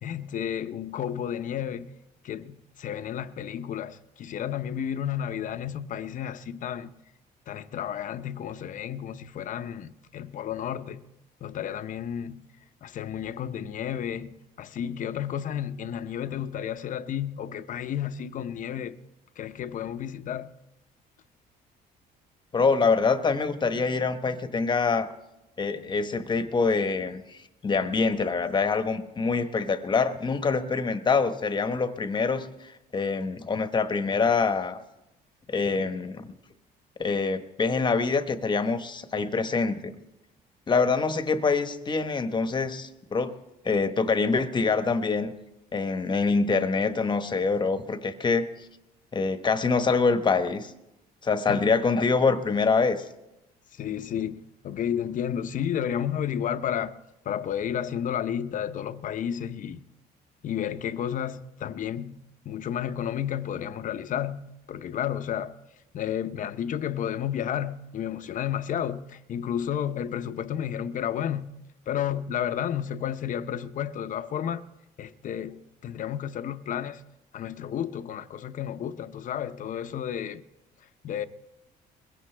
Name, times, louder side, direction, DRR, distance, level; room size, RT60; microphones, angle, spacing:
voice 1, 0.0-1.9 2.2-6.9 7.5-11.0 11.4-12.4 12.8-19.0 19.4-20.5 51.5-51.6 53.7-56.9 57.2-59.8 60.4-65.5 65.9-71.5 71.9-74.6 75.0-77.0 77.3-80.4 81.0-81.3, left 9 dB, 50° left, 0.7 m, -32 dB
voice 2, 22.5-25.1 25.6-34.8 35.5-36.3 37.0-40.0 40.7-43.3 43.6-45.3 45.7-48.5 49.1-50.7 51.2-53.0, left 4 dB, 25° left, 1.0 m, -25 dB
21.5 x 16.5 x 3.3 m
cardioid pair, 110°, 17 cm